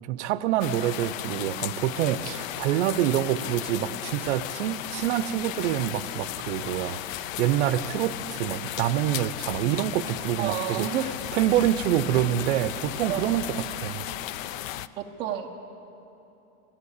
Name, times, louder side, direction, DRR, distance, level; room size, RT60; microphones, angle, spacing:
voice 1, 0.1-10.9 11.3-14.0, right 12 dB, 55° right, 15 dB, 0.6 m, -26 dB
sound 1, 0.6-14.9, left 13 dB, 70° left, 0.5 m, -35 dB
voice 2, 10.4-11.1 13.1-13.4 15.0-15.5, right 10 dB, 15° right, 0 dB, 0.3 m, -30 dB
16.0 x 8.5 x 8.0 m, 3.0 s
supercardioid pair, 140°, 42 cm